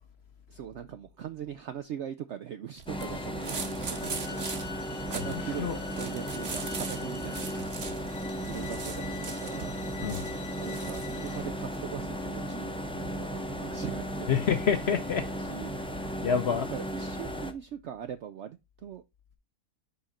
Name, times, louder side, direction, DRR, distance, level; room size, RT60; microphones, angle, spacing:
voice 1, 0.5-7.8 8.5-9.8 10.6-14.4 15.4-15.7 16.7-19.0, right 9 dB, 70° right, 0.6 m, -41 dB
sound 1, 2.8-17.5, equal, 5° left, 0.4 m, -35 dB
sound 2, 2.8-11.9, right 5 dB, 45° right, 1.2 m, -41 dB
sound 3, 3.0-3.5 4.0-11.5, left 7 dB, 85° left, 1.5 m, -46 dB
voice 2, 5.2-5.8 10.0-10.3 14.3-15.3 16.2-16.7, left 7 dB, 55° left, 0.7 m, -28 dB
5.6 x 5.1 x 4.2 m
omnidirectional pair, 1.7 m